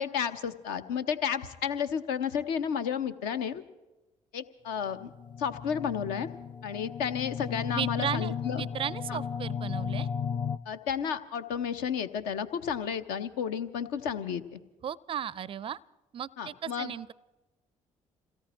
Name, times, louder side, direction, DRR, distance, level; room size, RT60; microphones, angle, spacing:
voice 1, 0.0-3.6 4.3-5.1 5.4-6.3 6.6-8.6 9.1-9.2 10.7-14.6 16.4-16.9, left 7 dB, 65° left, 10 dB, 0.8 m, -32 dB
sound 1, 4.9-10.6, left 6 dB, 30° left, 0.4 m, -35 dB
voice 2, 7.7-10.1 14.8-15.8 16.1-17.1, right 9 dB, 30° right, 23 dB, 0.4 m, -35 dB
28.0 x 17.5 x 3.0 m, 1.1 s
figure-of-eight pair, 45°, 17 cm